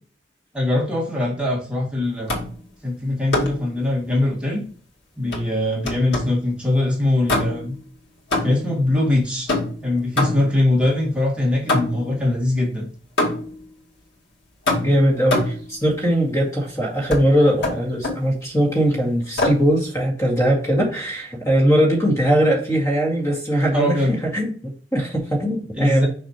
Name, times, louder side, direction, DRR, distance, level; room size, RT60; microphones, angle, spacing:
voice 1, 0.5-2.4 2.8-4.6 5.2-7.7 8.4-9.5 9.8-12.9 23.7-24.2 25.7-26.1, left 1 dB, 5° right, -3 dB, 2.1 m, -22 dB
sound 1, 2.3-2.6 3.3-3.7 5.3-6.4 7.3-7.8 8.3-8.8 9.5-10.6 11.7-12.2 13.2-13.6 14.7-15.7 17.1-17.3 17.6-18.3 19.4-19.7, left 2 dB, 85° left, 2.2 m, -24 dB
voice 2, 14.8-26.1, equal, 20° left, -1 dB, 2.1 m, -20 dB
6.4 x 5.8 x 3.0 m, 0.42 s
head